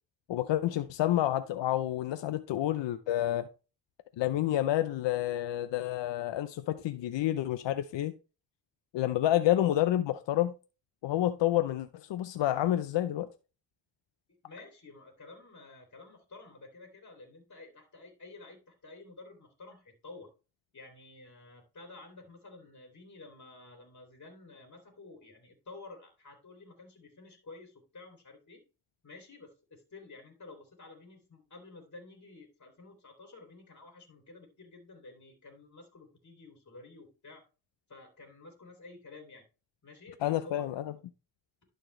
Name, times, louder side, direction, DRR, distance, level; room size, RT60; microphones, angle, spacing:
voice 1, 0.3-3.5 4.2-8.1 8.9-10.5 11.0-13.3 40.2-40.9, left 13 dB, 75° left, 0.7 m, -29 dB
voice 2, 14.4-20.3 20.7-28.6 29.0-37.4 37.9-39.4 39.8-40.7, left 3 dB, 40° left, 2.9 m, -51 dB
11.5 x 4.4 x 3.2 m
cardioid pair, 70°, 43 cm